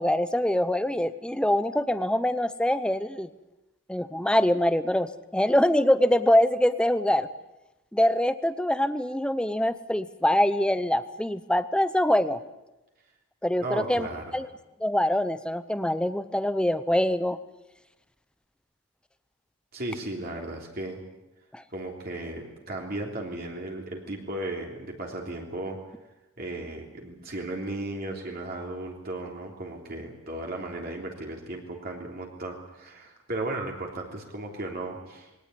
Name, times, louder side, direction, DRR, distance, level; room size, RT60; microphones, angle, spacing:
voice 1, 0.0-3.3 3.9-7.3 7.9-12.4 13.4-14.1 14.3-14.5 14.8-17.4 21.5-21.6, left 1 dB, 5° left, 12 dB, 0.7 m, -24 dB
voice 2, 13.6-14.3 19.7-21.0 21.7-25.8 26.4-35.3, right 2 dB, 45° right, 0 dB, 3.3 m, -35 dB
21.5 x 18.0 x 9.6 m, 1.0 s
head